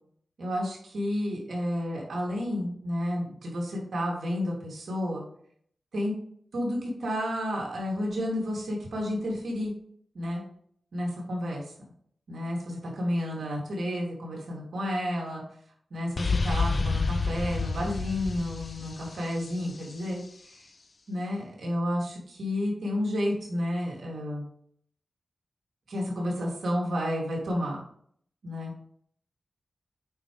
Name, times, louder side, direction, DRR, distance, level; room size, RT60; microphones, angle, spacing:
voice 1, 0.4-5.2 5.9-6.1 6.5-9.7 10.1-10.4 10.9-11.6 12.3-15.4 15.9-20.6 21.1-24.5 25.9-27.8 28.4-28.7, left 1 dB, 80° right, -3 dB, 3.0 m, -31 dB
sound 1, 16.2-19.9, left 4 dB, 55° left, 0.7 m, -29 dB
8.6 x 5.0 x 3.4 m, 0.62 s
cardioid pair, 55°, 0 cm